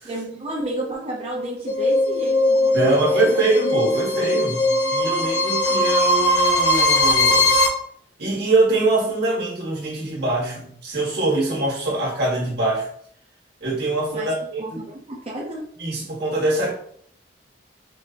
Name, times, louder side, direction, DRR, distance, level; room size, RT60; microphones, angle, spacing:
voice 1, 0.0-3.4 14.1-15.6, right 1 dB, 35° right, -3 dB, 0.6 m, -32 dB
sound 1, 1.7-7.7, left 1 dB, 75° left, 0.8 m, -19 dB
voice 2, 2.7-7.5 8.2-12.9 13.6-14.6 15.8-16.7, right 2 dB, 65° right, -3 dB, 1.5 m, -23 dB
5.1 x 2.6 x 2.8 m, 0.62 s
head